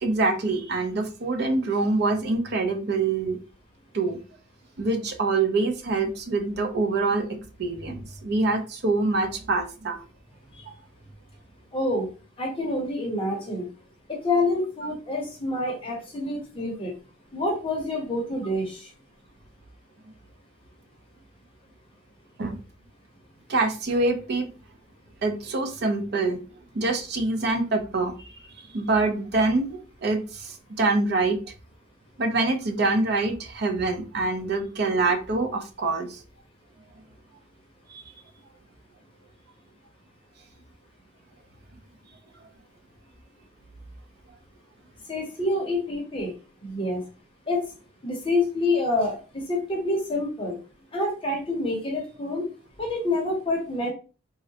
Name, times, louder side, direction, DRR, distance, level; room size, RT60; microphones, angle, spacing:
voice 1, 0.0-3.4 3.9-4.2 4.8-10.0 10.7-10.8 22.4-22.6 23.5-24.5 25.2-26.4 26.7-28.2 28.7-31.4 32.2-36.2 37.9-38.1, right 3 dB, 55° right, 6 dB, 0.5 m, -25 dB
voice 2, 11.7-12.1 12.4-13.7 14.1-16.9 17.3-18.9 45.1-46.3 46.6-47.0 47.5-47.6 48.0-50.6 50.9-52.5 52.8-53.9, left 2 dB, 25° left, 0 dB, 0.7 m, -27 dB
3.7 x 2.1 x 2.8 m, 0.35 s
head